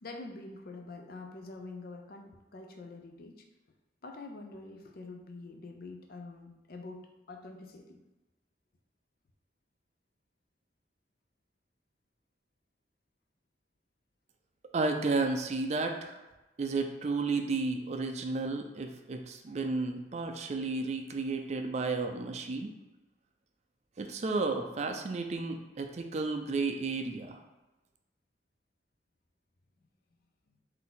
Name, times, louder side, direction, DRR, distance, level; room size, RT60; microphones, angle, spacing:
voice 1, 0.0-3.5 4.0-8.0, left 3 dB, 55° left, 4 dB, 0.5 m, -46 dB
voice 2, 14.7-16.2 16.6-22.7 24.0-27.4, right 3 dB, 35° right, 5 dB, 0.4 m, -32 dB
4.0 x 2.7 x 3.8 m, 1.1 s
head